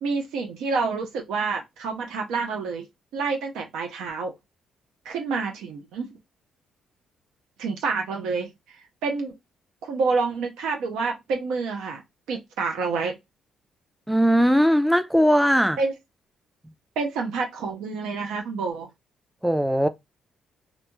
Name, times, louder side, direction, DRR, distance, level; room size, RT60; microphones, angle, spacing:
voice 1, 0.0-2.9 3.1-4.3 5.0-6.1 7.6-9.4 9.8-12.0 12.3-13.2 15.8-15.9 17.0-18.9, right 4 dB, 90° right, 0.5 m, -28 dB
voice 2, 14.1-15.8 19.4-19.9, equal, ahead, 0.3 m, -19 dB
2.6 x 2.2 x 2.9 m
cardioid pair, 90°, 0 cm